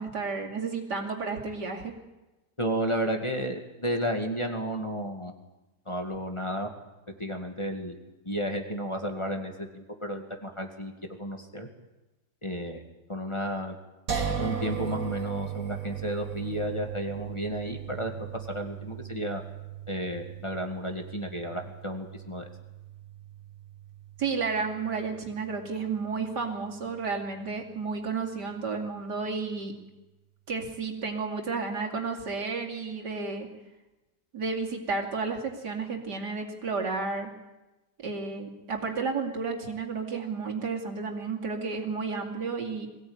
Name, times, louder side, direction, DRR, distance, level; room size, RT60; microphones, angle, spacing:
voice 1, 0.0-2.0 24.2-29.7 30.5-33.5 34.3-37.3 38.0-42.9, right 4 dB, 90° right, 2 dB, 3.1 m, -32 dB
voice 2, 2.6-5.3 5.9-6.7 7.2-8.0 8.2-11.7 12.4-12.8 13.1-13.8 14.4-18.1 18.5-19.4 19.9-22.5, equal, 15° left, 3 dB, 2.1 m, -32 dB
sound 1, 14.1-27.2, right 8 dB, 55° right, 2.4 m, -38 dB
22.0 x 17.0 x 8.9 m, 1.1 s
omnidirectional pair, 1.8 m